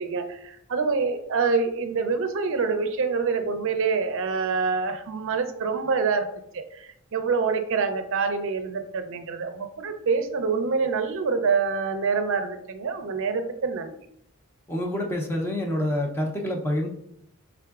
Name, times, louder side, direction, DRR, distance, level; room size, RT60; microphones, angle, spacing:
voice 1, 0.0-6.3 6.5-13.9, right 5 dB, 60° right, 7 dB, 0.4 m, -26 dB
voice 2, 14.7-16.9, left 1 dB, 10° left, 0 dB, 0.5 m, -27 dB
4.7 x 3.5 x 2.3 m, 0.73 s
head